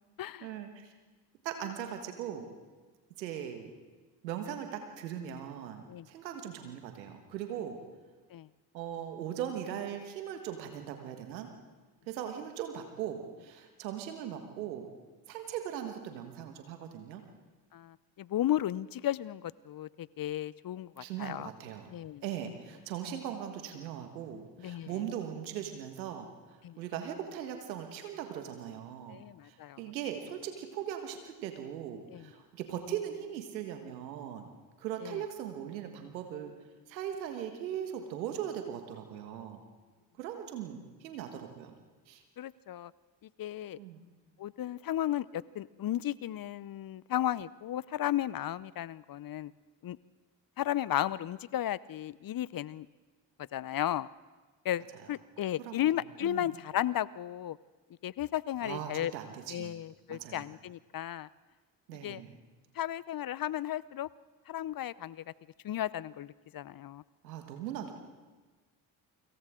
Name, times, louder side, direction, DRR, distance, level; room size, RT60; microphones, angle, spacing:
voice 1, 0.4-0.9 1.4-2.5 3.2-3.7 4.2-7.8 8.7-11.5 12.1-14.9 15.3-17.2 21.0-21.9 22.2-29.2 29.4-34.5 34.8-36.5 36.9-39.6 40.2-41.7 42.1-42.2 43.8-44.0 54.9-55.1 55.6-55.7 56.2-56.5 58.6-59.7 60.1-60.5 61.9-62.4 67.2-67.9, right 9 dB, 90° right, 5 dB, 1.7 m, -39 dB
voice 2, 17.7-21.5 21.9-22.2 24.6-24.9 26.6-26.8 29.1-29.8 32.1-32.2 35.0-35.2 42.4-42.9 43.4-43.8 44.4-49.5 49.8-50.0 50.6-52.9 53.5-54.1 54.6-54.8 55.1-57.6 58.0-59.1 59.5-61.3 62.0-62.2 62.8-64.1 64.5-65.2 65.6-67.0, left 12 dB, 45° left, 21 dB, 0.6 m, -34 dB
28.5 x 25.5 x 3.8 m, 1.3 s
hypercardioid pair, 40°, 50 cm